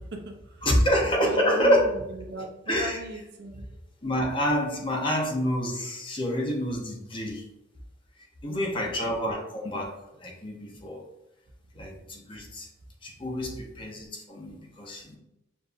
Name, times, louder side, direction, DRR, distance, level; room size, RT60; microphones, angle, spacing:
voice 1, 0.0-0.7 1.2-3.7 8.5-9.1, right 1 dB, 55° right, 2 dB, 0.6 m, -38 dB
voice 2, 0.6-1.9 2.7-3.0 4.0-7.5 8.2-11.0 11.7-12.7 13.0-15.2, equal, 25° left, 0 dB, 0.7 m, -27 dB
6.7 x 2.6 x 2.5 m, 0.87 s
head